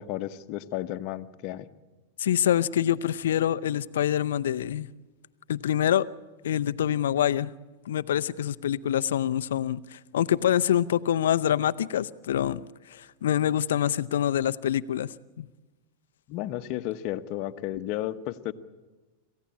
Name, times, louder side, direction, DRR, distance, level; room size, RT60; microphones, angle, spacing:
voice 1, 0.0-1.7 16.3-18.5, left 14 dB, 50° left, 11 dB, 1.1 m, -33 dB
voice 2, 2.2-4.9 5.5-6.1 6.4-7.5 7.9-12.6 12.9-15.5, left 10 dB, 75° left, 13 dB, 0.7 m, -26 dB
27.5 x 15.5 x 8.6 m, 1.2 s
hypercardioid pair, 100°, 0 cm